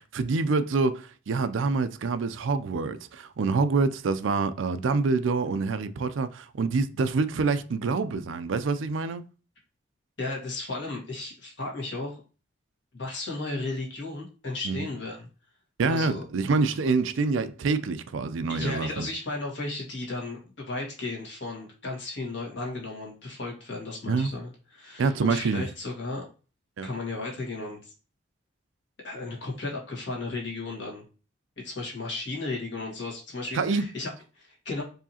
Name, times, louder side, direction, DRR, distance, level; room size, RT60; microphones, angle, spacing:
voice 1, 0.0-9.2 14.6-14.9 15.8-19.1 24.1-24.3 25.0-25.6 26.8-26.9 33.5-33.9, right 4 dB, 75° right, 0.4 m, -26 dB
voice 2, 10.2-12.2 12.9-15.3 15.8-16.2 18.5-26.3 26.8-27.9 29.0-31.0 31.6-34.8, left 2 dB, 65° left, 1.6 m, -34 dB
4.7 x 2.8 x 2.8 m
head